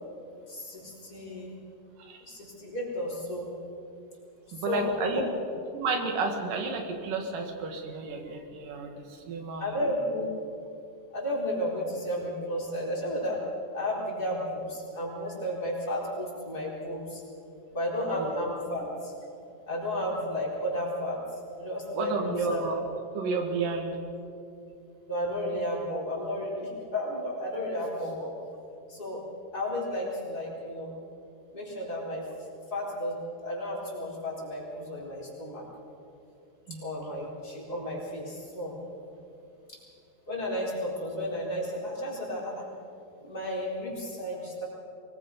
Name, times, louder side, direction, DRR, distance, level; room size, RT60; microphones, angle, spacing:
voice 1, 0.5-1.5 2.3-3.5 4.5-5.3 9.6-10.3 11.1-13.4 13.7-17.2 17.7-19.1 19.7-22.6 25.1-28.3 28.9-29.2 29.5-30.9 31.5-32.2 32.7-35.6 36.8-38.8 39.7-39.8 40.3-42.6 43.2-44.7, left 1 dB, 30° left, -5 dB, 4.6 m, -33 dB
voice 2, 4.5-5.3 5.7-9.8 18.1-18.3 22.0-22.8 23.1-24.0 36.7-36.9, right 3 dB, 85° right, 3 dB, 3.5 m, -31 dB
23.5 x 20.5 x 5.3 m, 2.6 s
omnidirectional pair, 3.7 m